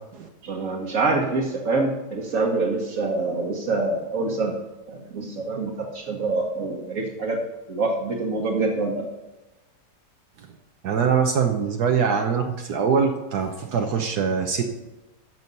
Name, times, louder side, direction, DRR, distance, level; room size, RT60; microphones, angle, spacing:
voice 1, 0.4-4.6 4.9-7.4 7.7-9.1, right 3 dB, 55° right, -2 dB, 1.7 m, -25 dB
voice 2, 10.8-14.6, right 6 dB, 70° right, 3 dB, 1.4 m, -23 dB
14.5 x 6.3 x 5.4 m, 1.0 s
omnidirectional pair, 1.8 m